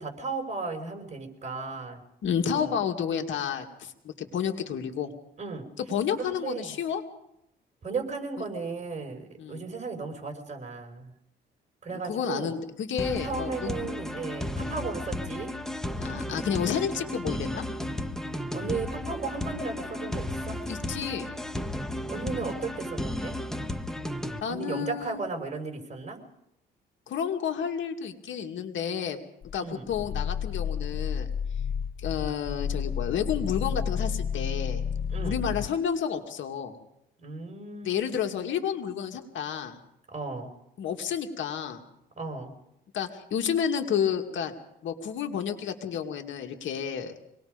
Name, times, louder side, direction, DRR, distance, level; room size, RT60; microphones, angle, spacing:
voice 1, 0.0-2.0 2.5-2.7 5.4-5.7 6.2-6.7 7.8-11.1 11.8-12.6 13.2-15.5 18.5-20.6 22.1-23.4 24.5-26.2 29.6-29.9 35.1-35.4 37.2-38.2 40.1-40.5 42.2-42.5, right 4 dB, 35° right, 4 dB, 5.4 m, -35 dB
voice 2, 2.2-5.1 5.8-7.0 9.4-9.6 11.9-13.7 14.6-14.9 16.0-17.6 20.7-21.3 24.4-25.2 27.1-29.2 29.5-31.3 32.0-34.8 35.2-36.8 37.8-39.8 40.8-41.8 42.9-44.5 44.8-47.2, left 8 dB, 75° left, 5 dB, 2.4 m, -30 dB
sound 1, 13.0-24.4, left 1 dB, ahead, 1.4 m, -34 dB
Growling, 29.4-35.8, left 7 dB, 50° left, 0.7 m, -31 dB
26.0 x 20.0 x 5.3 m, 0.83 s
cardioid pair, 90°, 20 cm